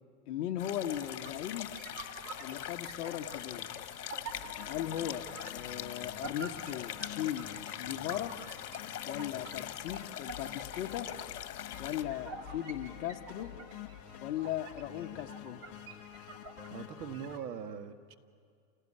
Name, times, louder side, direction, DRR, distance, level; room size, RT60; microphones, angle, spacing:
voice 1, 0.3-1.7 2.4-3.7 4.7-7.5 7.8-8.3 9.1-11.1 11.8-13.5 14.2-15.6, left 11 dB, 50° left, 4 dB, 1.2 m, -38 dB
sound 1, 0.6-12.0, left 11 dB, 75° left, 1.5 m, -42 dB
sound 2, 0.9-17.4, right 4 dB, 35° right, 3.1 m, -50 dB
sound 3, 4.3-17.4, left 12 dB, 30° left, 1.1 m, -49 dB
voice 2, 16.7-18.1, right 7 dB, 80° right, 8 dB, 1.8 m, -41 dB
29.0 x 17.0 x 9.9 m, 2.3 s
hypercardioid pair, 145°, 47 cm